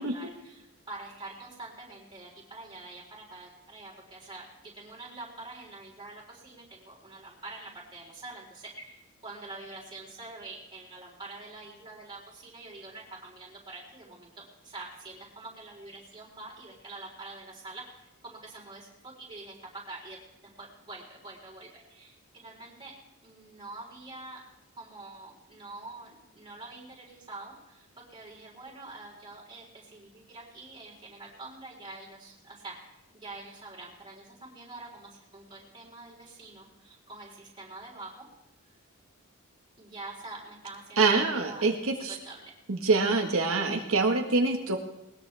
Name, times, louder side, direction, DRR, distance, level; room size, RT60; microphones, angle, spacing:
voice 1, 0.0-22.9 23.2-24.4 24.8-38.3 39.8-42.5, right 2 dB, 20° right, -4 dB, 4.2 m, -46 dB
voice 2, 41.0-42.2 42.7-44.8, right 3 dB, 65° right, 2 dB, 1.6 m, -25 dB
20.5 x 20.0 x 3.5 m, 0.87 s
head